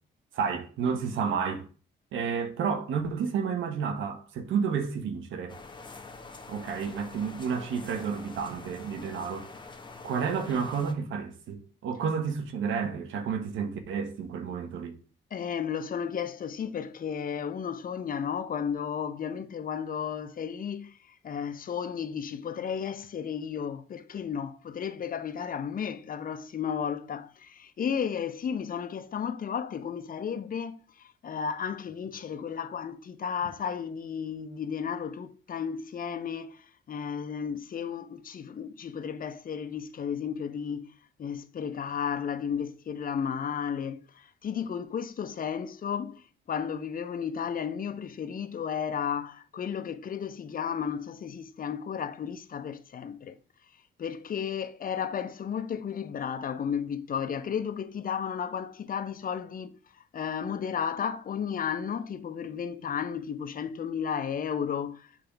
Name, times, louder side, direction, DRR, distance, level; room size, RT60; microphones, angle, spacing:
voice 1, 0.3-1.7 2.1-5.6 6.5-9.5 10.0-15.0, right 6 dB, 80° right, 1.2 m, -31 dB
sound 1, 5.5-10.9, left 3 dB, 25° left, 1.0 m, -46 dB
voice 2, 15.3-20.9 21.2-40.9 41.2-53.4 54.0-59.7 60.1-65.1, left 7 dB, 45° left, 0.8 m, -33 dB
7.6 x 3.4 x 5.1 m
cardioid pair, 90°, 20 cm